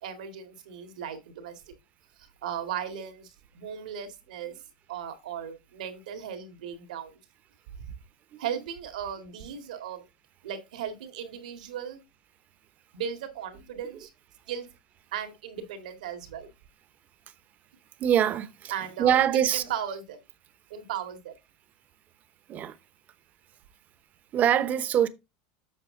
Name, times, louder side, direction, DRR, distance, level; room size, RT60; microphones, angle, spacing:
voice 1, 0.0-1.6 2.2-4.5 4.9-7.2 7.8-7.9 8.4-10.1 10.4-12.0 12.9-14.1 14.5-14.7 15.1-16.5 18.7-19.2 19.5-20.2 20.7-21.3, right 8 dB, 85° right, 2.0 m, -36 dB
voice 2, 18.0-18.7 19.0-19.6 22.5-22.8 24.3-25.1, right 10 dB, 45° right, 0.9 m, -23 dB
7.9 x 6.2 x 3.8 m
supercardioid pair, 100°, 4 cm